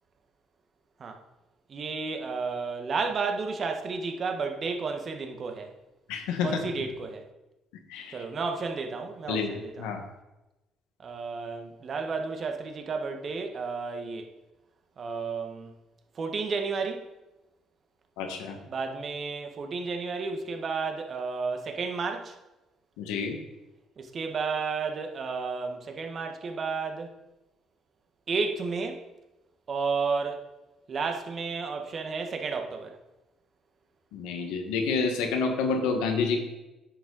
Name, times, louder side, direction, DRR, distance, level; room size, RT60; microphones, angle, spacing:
voice 1, 1.7-5.7 6.4-7.2 8.1-10.0 11.0-14.2 15.0-15.7 16.1-17.0 18.7-22.3 24.0-27.1 28.3-29.0 29.7-30.4 30.9-33.0, right 4 dB, 50° right, 1.3 m, -32 dB
voice 2, 6.1-6.6 7.9-8.2 9.3-10.0 18.2-18.6 23.0-23.4 34.1-36.4, left 4 dB, 85° left, 1.4 m, -29 dB
9.8 x 6.3 x 4.0 m
supercardioid pair, 65°, 0 cm